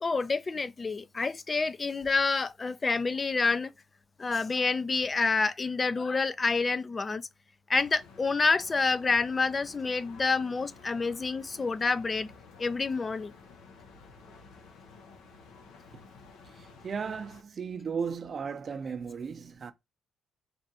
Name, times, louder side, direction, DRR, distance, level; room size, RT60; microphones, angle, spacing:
voice 1, 0.0-3.7 4.2-7.3 7.7-12.3 12.6-13.3, left 4 dB, 30° left, 0.4 m, -28 dB
sound 1, 7.7-17.4, left 4 dB, 90° left, 0.8 m, -52 dB
voice 2, 16.6-19.7, right 6 dB, 45° right, 0.6 m, -35 dB
3.4 x 2.5 x 4.2 m
cardioid pair, 90°, 0 cm